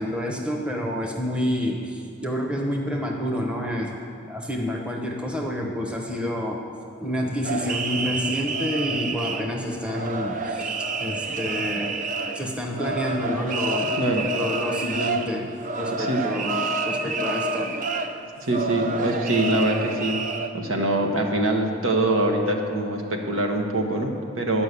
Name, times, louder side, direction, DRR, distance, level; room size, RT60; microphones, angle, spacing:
voice 1, 0.0-4.0 4.3-6.6 7.0-12.0 12.3-13.9 14.3-17.8, left 1 dB, 5° right, 0 dB, 0.9 m, -28 dB
sound 1, 7.4-20.5, right 3 dB, 40° right, 0.5 m, -28 dB
voice 2, 18.4-20.2 20.5-24.6, right 1 dB, 85° right, 2 dB, 1.2 m, -24 dB
11.0 x 5.6 x 8.2 m, 2.5 s
head